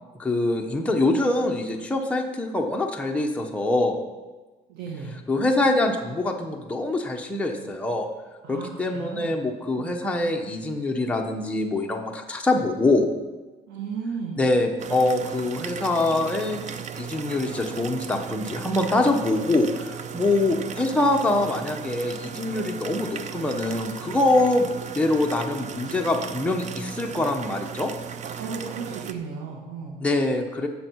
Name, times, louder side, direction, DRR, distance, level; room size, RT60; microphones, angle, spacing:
voice 1, 0.2-4.0 5.3-8.1 8.5-13.1 14.4-16.6 17.0-27.9 30.0-30.7, left 2 dB, 5° left, 1 dB, 1.2 m, -24 dB
voice 2, 4.7-5.1 8.4-9.4 9.8-9.9 13.7-14.4 28.4-30.0, right 5 dB, 85° right, -3 dB, 1.8 m, -35 dB
sound 1, 14.8-29.1, right 7 dB, 45° right, 0.7 m, -36 dB
15.5 x 6.7 x 4.7 m, 1.2 s
cardioid pair, 110°, 17 cm